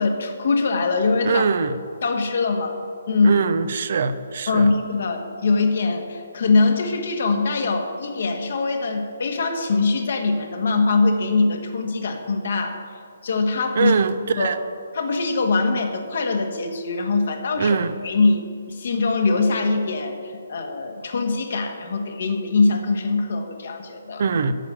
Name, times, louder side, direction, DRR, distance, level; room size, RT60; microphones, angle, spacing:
voice 1, 0.0-1.4 2.0-2.8 3.1-3.4 3.9-4.0 4.5-12.8 13.2-13.9 14.4-14.5 14.9-17.8 18.0-24.2, left 3 dB, 55° left, 4 dB, 1.6 m, -22 dB
voice 2, 1.2-1.7 3.2-4.7 13.8-14.6 17.6-17.9 24.2-24.5, right 5 dB, 55° right, 12 dB, 0.6 m, -22 dB
9.1 x 7.3 x 9.1 m, 2.2 s
figure-of-eight pair, 135°, 0 cm